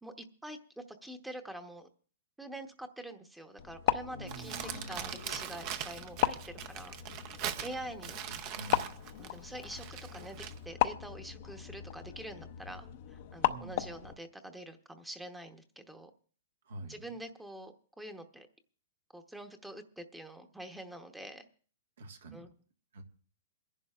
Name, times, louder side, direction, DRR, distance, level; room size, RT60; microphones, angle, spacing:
voice 1, 0.0-1.9 2.4-7.0 7.6-8.2 9.2-16.1 16.9-18.5 19.1-21.5 22.3-22.5, right 1 dB, 5° right, 7 dB, 0.9 m, -46 dB
sound 1, 3.6-14.1, left 13 dB, 50° left, 0.6 m, -37 dB
voice 2, 4.1-5.1 8.0-9.0 13.4-14.1 16.6-17.1 22.0-22.4 22.9-23.0, right 2 dB, 75° right, 4 dB, 1.6 m, -47 dB
Crumpling crinkling, 4.3-10.6, right 10 dB, 40° right, 0.7 m, -41 dB
27.5 x 11.0 x 2.4 m, 0.44 s
hypercardioid pair, 140°, 0 cm